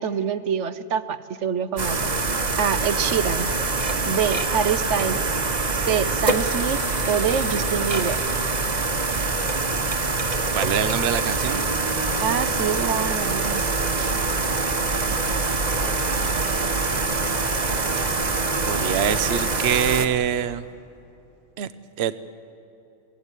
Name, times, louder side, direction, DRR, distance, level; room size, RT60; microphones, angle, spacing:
voice 1, 0.0-2.1 2.6-3.5 4.1-5.3 5.7-6.8 7.1-8.2 12.2-14.1, right 7 dB, 80° right, 12 dB, 1.1 m, -26 dB
sound 1, 1.8-20.1, right 3 dB, 35° right, 1.3 m, -24 dB
voice 2, 10.5-11.6 16.0-16.5 18.6-20.6 21.6-21.7 22.0-22.3, right 9 dB, 65° right, 12 dB, 0.9 m, -25 dB
28.5 x 16.0 x 8.2 m, 2.8 s
omnidirectional pair, 1.2 m